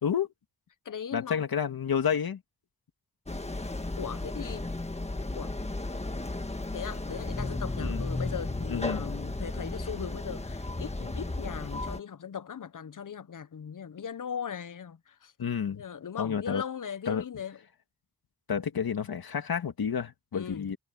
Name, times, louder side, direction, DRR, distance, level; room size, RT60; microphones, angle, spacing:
voice 1, 0.0-0.3 1.1-2.4 7.8-8.0 8.7-9.1 15.4-15.8 16.2-16.6 17.1-17.2 18.5-20.8, left 7 dB, 85° left, 2.0 m, -30 dB
voice 2, 0.8-1.4 4.0-4.8 5.3-5.5 6.7-15.3 15.7-17.6 20.3-20.7, left 7 dB, 60° left, 0.9 m, -39 dB
sound 1, 3.3-12.0, left 2 dB, 20° left, 1.6 m, -34 dB
wide cardioid pair, 80°, 36 cm